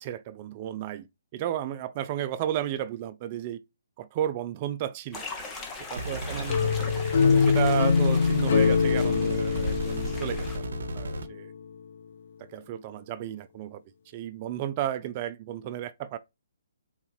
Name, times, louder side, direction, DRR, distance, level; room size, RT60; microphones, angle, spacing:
voice 1, 0.0-1.1 1.3-3.6 4.0-5.3 5.9-6.8 7.2-11.5 12.4-13.8 14.1-16.2, right 11 dB, 35° right, 0.3 m, -33 dB
sound 1, 5.1-10.6, left 2 dB, 15° left, 0.8 m, -38 dB
sound 2, 6.0-11.2, right 1 dB, 75° right, 0.7 m, -35 dB
sound 3, 6.5-11.4, left 6 dB, 55° left, 0.4 m, -24 dB
3.9 x 2.9 x 2.3 m
hypercardioid pair, 145°, 0 cm